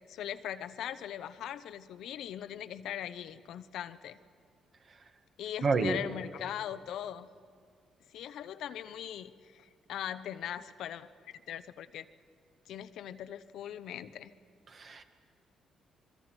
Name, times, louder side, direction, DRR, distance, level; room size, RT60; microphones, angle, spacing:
voice 1, 0.1-4.2 5.4-7.3 8.1-11.1 11.5-12.0 12.7-14.3, left 10 dB, 80° left, 12 dB, 0.8 m, -40 dB
voice 2, 5.6-6.0 14.7-15.0, right 4 dB, 50° right, 7 dB, 1.8 m, -29 dB
27.0 x 22.5 x 6.1 m, 2.2 s
cardioid pair, 90°, 0 cm